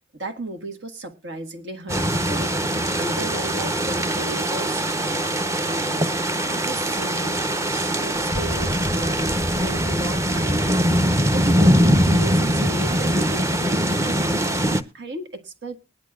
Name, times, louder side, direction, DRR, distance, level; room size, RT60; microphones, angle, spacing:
voice 1, 0.1-2.5 3.0-5.3 5.6-6.1 6.5-7.4 7.7-10.9 11.3-14.5 14.9-15.8, right 1 dB, 75° right, 6 dB, 1.7 m, -34 dB
sound 1, 1.9-14.8, equal, 15° right, 0.7 m, -22 dB
20.0 x 10.5 x 2.3 m, 0.28 s
head